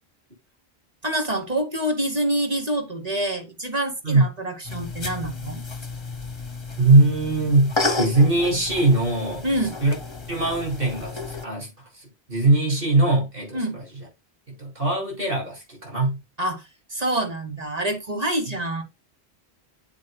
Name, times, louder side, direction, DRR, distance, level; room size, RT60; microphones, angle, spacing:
voice 1, 1.0-5.6 9.4-9.8 13.5-13.8 16.4-18.8, right 1 dB, 40° right, 2.6 m, -26 dB
sound 1, 4.6-11.4, left 3 dB, 25° left, 1.3 m, -31 dB
voice 2, 6.8-9.4 9.8-9.9 10.3-11.7 11.9-13.8 14.5-16.2, right 2 dB, 60° right, 6.7 m, -21 dB
9.1 x 8.3 x 2.4 m
omnidirectional pair, 1.1 m